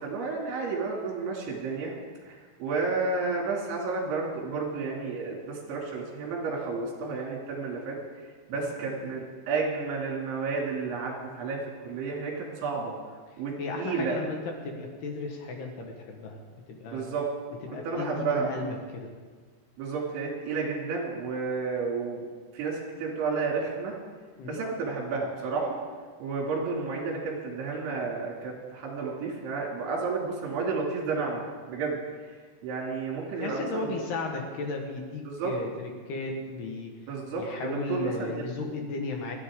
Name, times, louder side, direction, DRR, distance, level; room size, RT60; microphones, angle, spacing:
voice 1, 0.0-1.9 2.3-8.0 8.5-12.9 13.4-14.2 16.9-17.2 17.8-18.5 19.8-22.3 22.5-23.9 24.4-25.8 26.2-32.0 32.6-33.9 35.2-35.5 37.1-38.5, right 4 dB, 70° right, -2 dB, 4.9 m, -31 dB
voice 2, 8.5-9.2 13.3-17.1 17.6-19.1 24.4-24.6 33.4-36.9 37.4-39.4, left 3 dB, 65° left, 2 dB, 3.0 m, -35 dB
28.5 x 9.7 x 3.7 m, 1.5 s
omnidirectional pair, 5.8 m